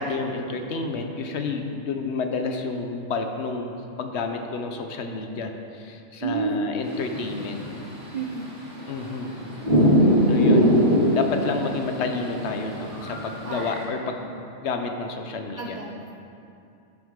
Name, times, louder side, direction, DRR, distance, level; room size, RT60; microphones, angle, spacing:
voice 1, 0.0-7.6 8.9-9.3 10.3-10.8 11.1-14.4 14.6-15.8, left 4 dB, 60° left, 5 dB, 0.9 m, -30 dB
voice 2, 6.2-6.8 8.1-8.5 13.4-13.8 15.6-16.3, right 4 dB, 55° right, 0 dB, 0.4 m, -30 dB
sound 1, 6.8-13.8, equal, 40° right, 2.4 m, -22 dB
11.5 x 5.9 x 3.7 m, 2.6 s
omnidirectional pair, 1.4 m